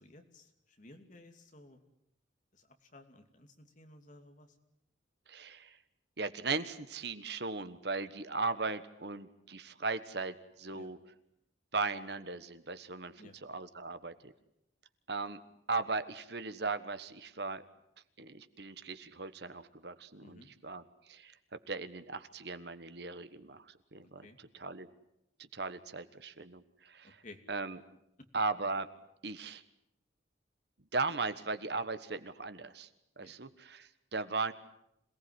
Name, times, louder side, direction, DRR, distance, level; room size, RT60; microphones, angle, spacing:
voice 1, 0.0-1.9 2.5-4.6 10.7-10.9 13.2-13.4 20.2-20.5 24.0-24.4 27.0-27.4 28.2-28.3 33.2-33.4, left 2 dB, 40° left, 5 dB, 2.7 m, -56 dB
voice 2, 5.3-5.8 6.2-11.0 11.7-13.1 13.4-14.3 15.1-15.4 15.7-17.6 18.2-21.3 21.7-24.3 24.5-24.9 25.4-27.2 27.5-27.8 28.3-28.9 29.2-29.6 30.9-32.9 33.2-34.5, right 3 dB, 60° right, 12 dB, 1.3 m, -37 dB
26.5 x 18.5 x 9.8 m, 0.80 s
head